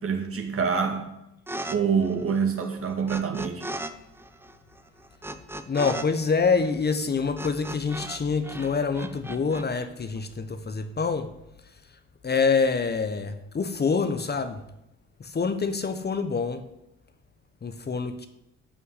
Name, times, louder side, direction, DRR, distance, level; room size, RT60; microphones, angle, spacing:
voice 1, 0.0-1.1 1.7-3.7, right 6 dB, 45° right, 2.3 m, -26 dB
sound 1, 1.5-1.8 2.0-3.9 4.2-8.2 8.4-9.6, right 1 dB, 10° right, 0.9 m, -37 dB
voice 2, 5.7-11.3 12.2-14.6 15.2-16.7 17.6-18.3, left 5 dB, 35° left, 1.1 m, -26 dB
12.5 x 5.7 x 8.4 m
cardioid pair, 90°, 30 cm